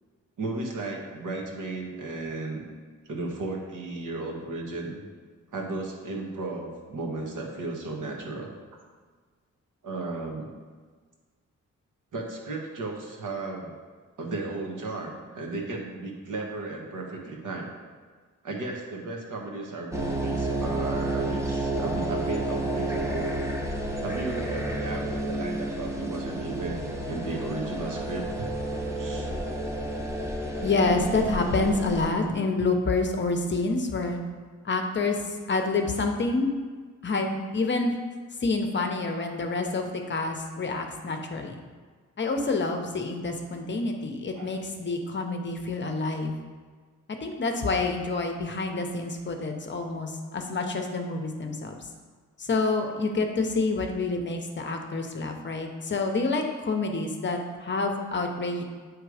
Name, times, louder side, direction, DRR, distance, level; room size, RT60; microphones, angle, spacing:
voice 1, 0.4-2.6 3.0-5.0 5.5-8.5 9.8-10.5 12.1-13.8 14.2-17.7 18.4-23.3 24.0-28.5 29.0-29.3 31.2-31.3 44.4-44.6, right 3 dB, 80° right, 0 dB, 1.3 m, -35 dB
sound 1, 19.9-32.1, right 1 dB, 10° right, 0.7 m, -30 dB
voice 2, 30.6-34.2 34.6-35.2 35.5-36.5 37.0-37.9 38.4-41.6 42.2-46.3 47.2-51.7 52.4-58.6, left 3 dB, 35° left, 3 dB, 0.7 m, -28 dB
8.1 x 3.3 x 4.8 m, 1.5 s
wide cardioid pair, 155°, 31 cm